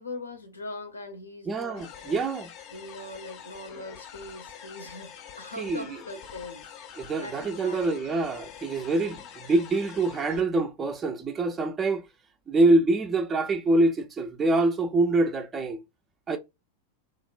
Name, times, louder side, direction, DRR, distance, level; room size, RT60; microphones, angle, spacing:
voice 1, 0.0-2.2 2.7-6.6 6.9-8.0, left 2 dB, 80° left, 0.6 m, -41 dB
voice 2, 1.5-2.5 5.6-5.9 7.0-12.1 12.5-15.8 16.3-16.4, right 2 dB, 20° right, 0.3 m, -25 dB
sound 1, 1.7-10.4, left 8 dB, 40° left, 0.5 m, -45 dB
3.1 x 2.1 x 2.3 m
figure-of-eight pair, 90°, 0 cm